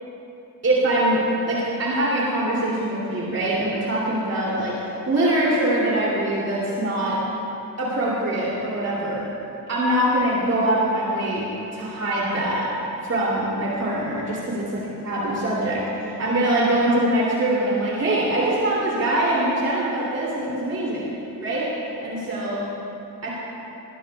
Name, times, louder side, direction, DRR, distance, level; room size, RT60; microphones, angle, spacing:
voice 1, 0.6-1.2 1.5-7.2 7.8-9.2 9.7-12.6 13.0-14.6 15.0-21.1 21.4-21.7 22.0-22.6 23.2-23.3, right 1 dB, 50° right, -6 dB, 3.1 m, -23 dB
19.0 x 18.5 x 2.4 m, 2.9 s
cardioid pair, 130°, 33 cm